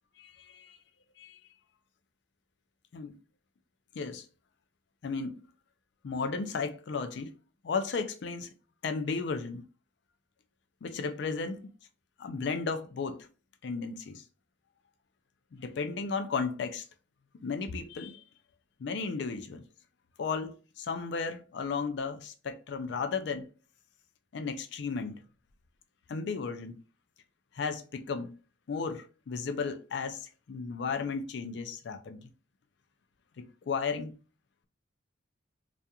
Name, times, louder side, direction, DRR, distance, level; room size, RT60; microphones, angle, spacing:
voice 1, 0.2-0.8 1.2-1.4 2.9-3.2 4.0-4.3 5.0-5.5 6.0-7.3 7.6-8.5 8.8-9.6 10.8-11.6 12.2-13.3 13.6-14.2 15.5-16.9 17.3-18.2 18.8-19.6 20.2-23.5 24.3-25.2 26.1-26.8 27.5-28.4 28.7-32.3 33.4-34.1, left 5 dB, 60° left, 0.4 m, -34 dB
2.4 x 2.3 x 2.8 m
head